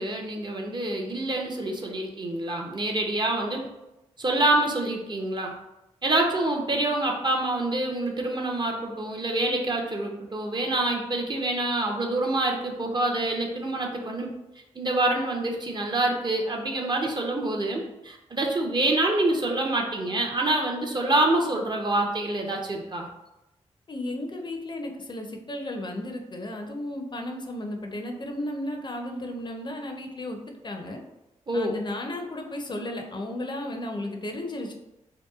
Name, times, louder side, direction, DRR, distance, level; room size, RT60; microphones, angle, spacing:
voice 1, 0.0-3.6 4.2-5.5 6.0-14.3 14.7-23.1 31.5-31.8, right 2 dB, 35° right, 1 dB, 0.5 m, -26 dB
voice 2, 23.9-30.4 30.6-31.0 31.5-34.7, left 1 dB, 35° left, 2 dB, 0.5 m, -34 dB
2.8 x 2.2 x 2.3 m, 0.95 s
cardioid pair, 45°, 13 cm